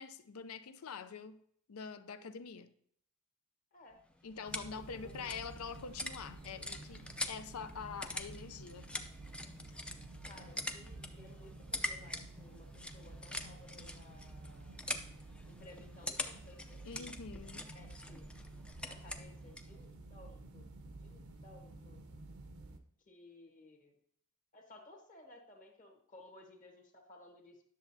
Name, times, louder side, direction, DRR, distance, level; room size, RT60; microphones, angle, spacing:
voice 1, 0.0-1.4 1.7-2.7 4.2-8.9 16.8-17.7, left 5 dB, 75° left, 0.5 m, -45 dB
sound 1, 3.9-19.8, left 1 dB, 5° left, 0.5 m, -45 dB
sound 2, 4.4-22.8, right 2 dB, 75° right, 0.8 m, -52 dB
voice 2, 5.0-5.3 10.3-14.8 15.5-17.1 17.6-18.2 18.9-20.7 21.0-22.0 23.1-24.0 24.5-27.6, left 2 dB, 40° left, 1.3 m, -58 dB
10.0 x 6.8 x 2.7 m
head